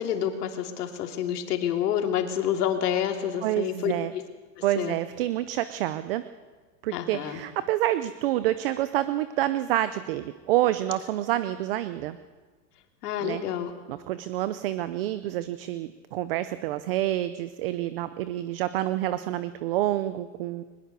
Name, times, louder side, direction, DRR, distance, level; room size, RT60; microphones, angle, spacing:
voice 1, 0.0-3.9 4.6-5.0 6.9-7.4 13.0-13.7, left 10 dB, 70° left, 4 dB, 3.0 m, -28 dB
voice 2, 3.4-4.1 4.6-6.2 6.8-12.2 13.2-13.4 13.9-20.6, right 14 dB, 35° right, 13 dB, 0.6 m, -28 dB
22.0 x 20.5 x 6.8 m, 1.4 s
supercardioid pair, 170°, 49 cm